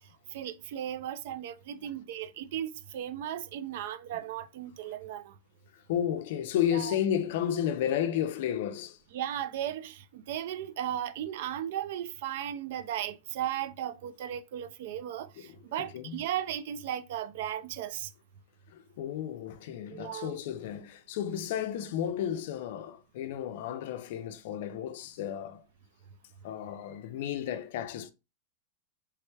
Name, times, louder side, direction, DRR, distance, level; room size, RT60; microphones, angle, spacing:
voice 1, 0.3-5.4 6.7-7.0 9.1-18.1 19.9-20.4, right 11 dB, 65° right, 0.3 m, -36 dB
voice 2, 5.7-9.0 15.4-16.2 18.7-25.6 26.4-28.1, left 10 dB, 65° left, 0.4 m, -33 dB
3.3 x 3.1 x 2.2 m
supercardioid pair, 140°, 0 cm